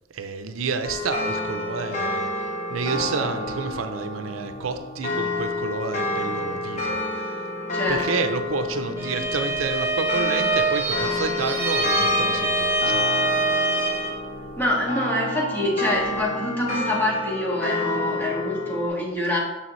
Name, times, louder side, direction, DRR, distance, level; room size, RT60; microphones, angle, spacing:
voice 1, 0.1-2.3 2.7-7.0 7.9-13.0, right 4 dB, 85° right, 8 dB, 0.5 m, -29 dB
sound 1, 0.8-18.9, left 2 dB, 35° left, 0.9 m, -29 dB
voice 2, 7.7-8.0 14.6-19.4, left 1 dB, 10° left, -5 dB, 1.8 m, -25 dB
Bowed string instrument, 9.0-14.2, right 1 dB, 10° right, 0.9 m, -24 dB
6.9 x 6.3 x 3.1 m, 1.1 s
head